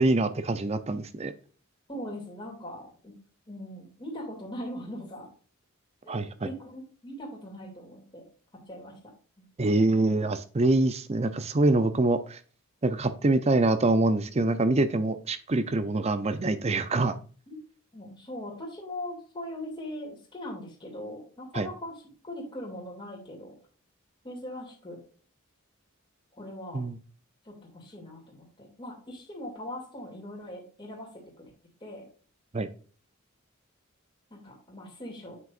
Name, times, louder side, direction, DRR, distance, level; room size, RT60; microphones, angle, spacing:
voice 1, 0.0-1.3 6.1-6.3 9.6-12.4 12.8-17.2 21.5-21.7 26.7-27.0 32.5-32.7, right 2 dB, 30° right, 12 dB, 0.5 m, -25 dB
voice 2, 1.9-3.1 3.5-5.3 6.0-8.3 8.7-9.5 9.8-9.9 17.5-17.6 17.9-23.5 24.2-25.0 26.3-26.8 27.4-31.5 31.8-32.0 34.3-35.3, left 1 dB, 20° left, -2 dB, 2.5 m, -41 dB
7.6 x 6.1 x 2.5 m, 0.41 s
head